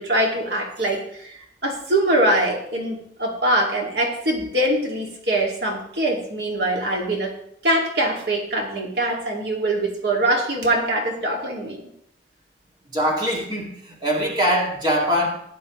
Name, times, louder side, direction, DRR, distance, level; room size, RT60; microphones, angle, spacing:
voice 1, 0.0-7.3 7.6-11.8, right 1 dB, 70° right, 0 dB, 2.3 m, -23 dB
voice 2, 12.9-15.3, equal, 25° right, -2 dB, 2.4 m, -22 dB
16.0 x 10.5 x 3.2 m, 0.69 s
head